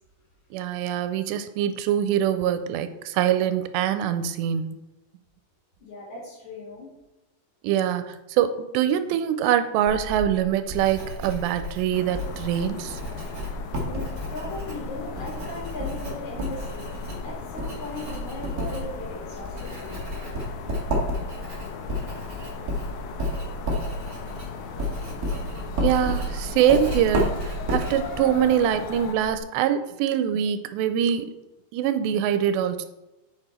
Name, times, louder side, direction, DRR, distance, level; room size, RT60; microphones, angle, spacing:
voice 1, 0.5-4.8 7.6-13.0 25.8-31.3 31.7-32.9, right 9 dB, 90° right, 10 dB, 2.8 m, -24 dB
voice 2, 5.8-6.9 13.4-20.0, left 2 dB, 45° left, -6 dB, 4.4 m, -38 dB
Writing, 9.9-29.4, equal, 60° right, 0.9 m, -32 dB
sound 1, 11.9-29.2, left 6 dB, 80° left, 2.0 m, -39 dB
sound 2, 14.7-16.4 16.8-19.3 20.0-26.4, left 5 dB, 65° left, 2.9 m, -47 dB
8.0 x 7.0 x 4.4 m, 0.99 s
omnidirectional pair, 4.9 m